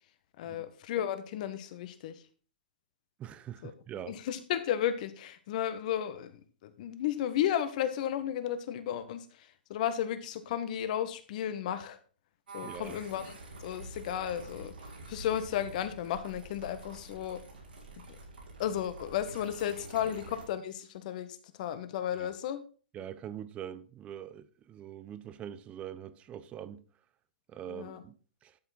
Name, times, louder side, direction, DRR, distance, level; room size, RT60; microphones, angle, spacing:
voice 1, 0.4-2.2 3.6-3.7 4.1-12.0 12.5-14.7 15.1-17.4 18.6-22.6 27.7-28.0, left 10 dB, 50° left, 1.6 m, -34 dB
voice 2, 3.2-4.2 12.6-13.0 20.0-20.1 22.2-22.3 22.9-26.8 27.5-28.6, right 10 dB, 25° right, 0.9 m, -43 dB
sound 1, 12.5-20.5, right 2 dB, 85° right, 5.5 m, -47 dB
12.5 x 7.0 x 4.3 m
hypercardioid pair, 130°, 5 cm